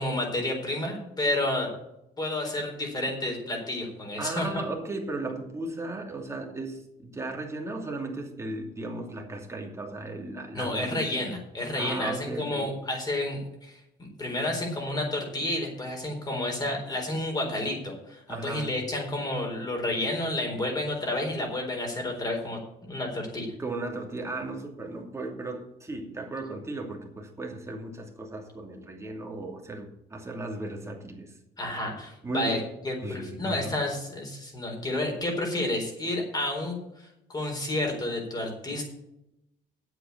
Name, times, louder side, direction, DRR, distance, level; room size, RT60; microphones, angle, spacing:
voice 1, 0.0-1.7 2.2-4.5 10.5-23.5 31.6-32.6 32.8-38.9, left 1 dB, 25° left, 2 dB, 4.1 m, -30 dB
voice 2, 4.2-11.2 11.7-12.7 18.3-18.8 23.6-31.4 32.2-32.6 33.0-33.7, right 2 dB, 15° right, 1 dB, 2.7 m, -36 dB
8.3 x 8.2 x 8.5 m, 0.84 s
cardioid pair, 110°, 17 cm